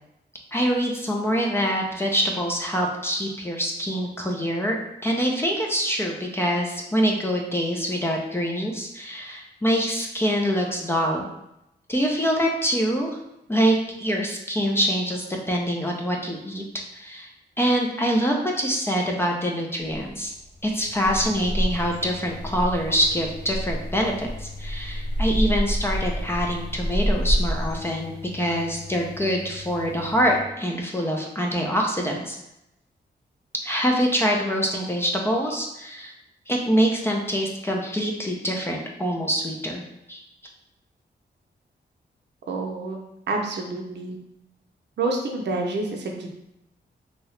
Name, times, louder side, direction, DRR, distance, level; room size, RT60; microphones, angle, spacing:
voice 1, 0.5-4.8 5.0-11.3 11.9-13.2 13.5-16.6 16.9-17.3 17.6-20.3 20.6-32.4 33.6-36.1 36.5-39.8 40.1-40.2, equal, 15° left, 0 dB, 0.4 m, -25 dB
sound 1, 19.8-27.7, equal, 55° left, 1.2 m, -28 dB
sound 2, 20.9-30.4, left 5 dB, 25° right, 0.7 m, -42 dB
voice 2, 42.5-43.0 43.3-44.2 45.0-46.3, right 3 dB, 70° right, 1 dB, 0.6 m, -28 dB
2.8 x 2.7 x 3.1 m, 0.85 s
wide cardioid pair, 155°, 18 cm